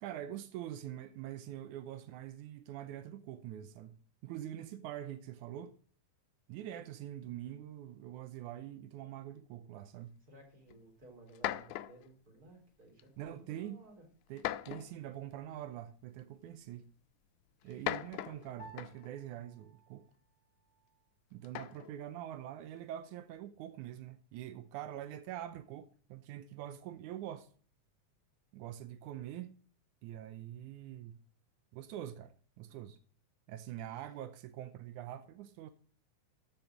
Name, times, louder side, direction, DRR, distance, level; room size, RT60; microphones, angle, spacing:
voice 1, 0.0-5.8 6.5-10.2 13.2-13.8 14.3-16.9 17.6-20.1 21.3-27.5 28.5-29.5 30.0-31.2 31.7-33.0 33.5-35.7, right 11 dB, 85° right, 2.1 m, -45 dB
voice 2, 10.3-14.0 17.6-18.0 33.7-34.3, right 2 dB, 30° right, 4.1 m, -58 dB
sound 1, 10.7-10.8 11.3-12.1 13.0-13.3 14.4-15.1 16.2-16.3 17.6-19.2 21.4-22.0, left 14 dB, 85° left, 2.0 m, -39 dB
Piano, 18.6-28.2, right 1 dB, 40° left, 0.8 m, -63 dB
13.5 x 5.7 x 4.5 m
omnidirectional pair, 3.5 m